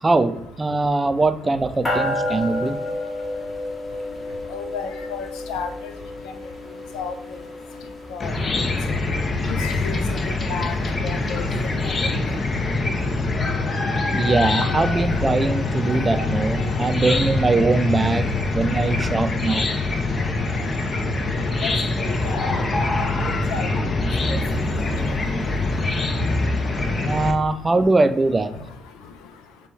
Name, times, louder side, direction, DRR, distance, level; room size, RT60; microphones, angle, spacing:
voice 1, 0.0-2.8 14.1-19.7 27.0-28.5, right 3 dB, 25° right, 10 dB, 0.4 m, -21 dB
sound 1, 1.8-9.5, left 1 dB, 20° left, 1.1 m, -31 dB
voice 2, 4.5-5.9 6.9-7.4 8.1-8.3 9.5-10.0 10.3-10.8 11.0-11.4 11.8-11.9 21.6-21.7 22.0-22.4 22.8-23.1 23.5-23.7 24.3-24.4, left 6 dB, 85° left, 7 dB, 0.5 m, -32 dB
Chicken rooster / Cricket, 8.2-27.3, left 2 dB, 40° left, 0.6 m, -24 dB
6.7 x 2.3 x 3.1 m, 0.81 s
supercardioid pair, 75°, 0 cm